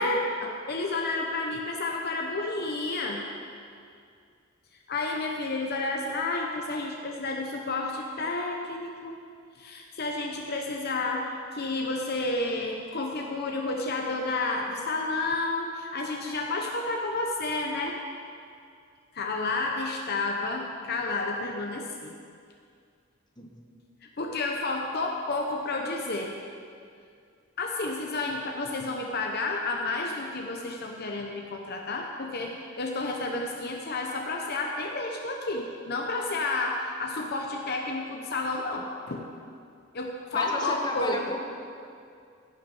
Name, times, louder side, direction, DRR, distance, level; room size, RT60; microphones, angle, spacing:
voice 1, 0.0-3.2 4.9-9.2 9.5-18.0 19.1-22.1 24.2-26.3 27.6-39.3 39.9-41.4, left 2 dB, 50° left, 1 dB, 0.8 m, -31 dB
voice 2, 40.3-41.4, left 1 dB, 20° left, 0 dB, 1.3 m, -33 dB
16.0 x 6.4 x 5.4 m, 2.3 s
head